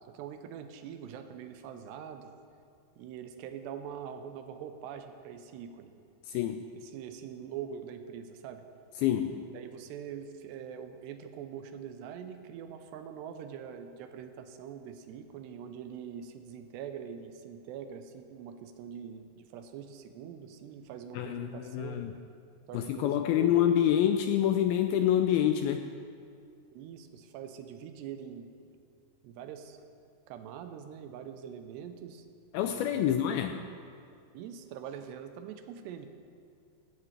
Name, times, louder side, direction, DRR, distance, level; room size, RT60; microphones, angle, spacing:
voice 1, 0.1-2.3 3.0-5.9 6.7-8.6 9.4-22.1 22.7-23.6 26.7-28.5 29.2-29.8 30.3-32.3 32.6-33.8 34.3-36.1, right 8 dB, 85° right, 8 dB, 3.0 m, -43 dB
voice 2, 6.3-6.6 9.0-9.5 21.1-22.1 22.7-25.9 32.5-33.5, left 10 dB, 85° left, 7 dB, 2.2 m, -27 dB
17.0 x 16.5 x 3.4 m, 2.4 s
omnidirectional pair, 4.8 m